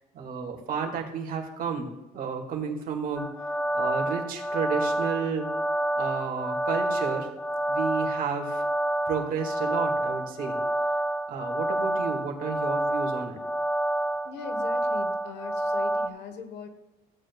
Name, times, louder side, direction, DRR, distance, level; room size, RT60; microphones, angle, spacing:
voice 1, 0.1-3.3 3.7-5.5 6.0-7.3 7.7-8.7 9.1-10.6 11.3-13.4, right 6 dB, 55° right, 1 dB, 2.1 m, -32 dB
sound 1, 3.2-16.1, right 1 dB, 5° left, 0.6 m, -28 dB
voice 2, 14.2-16.7, left 6 dB, 90° left, 8 dB, 1.4 m, -41 dB
15.5 x 8.9 x 2.4 m, 1.0 s
cardioid pair, 110°, 17 cm